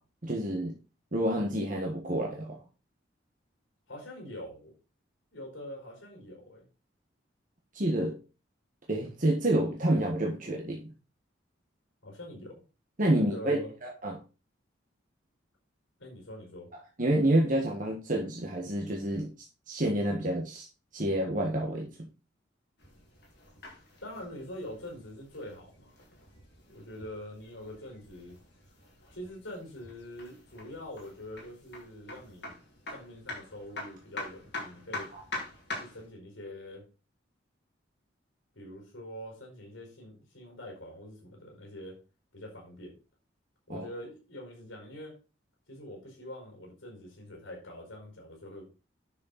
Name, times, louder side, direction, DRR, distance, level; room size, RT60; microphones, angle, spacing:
voice 1, 0.2-0.7 1.1-2.6 7.7-8.1 8.9-10.8 13.0-14.1 17.0-19.3 19.7-20.7 20.9-21.9 35.1-35.2 43.7-43.8, right 1 dB, 45° right, 0 dB, 1.6 m, -28 dB
voice 2, 3.9-4.7 5.3-6.7 12.0-12.6 13.1-13.7 16.0-16.7 24.0-25.9 26.7-28.4 29.1-32.5 32.9-35.1 35.8-36.9 38.5-42.0 42.3-43.0 43.7-45.2 45.7-48.6, left 1 dB, 80° left, 0 dB, 4.9 m, -44 dB
sound 1, 22.8-36.1, left 2 dB, 60° left, 4.5 m, -45 dB
9.9 x 6.7 x 4.2 m, 0.33 s
head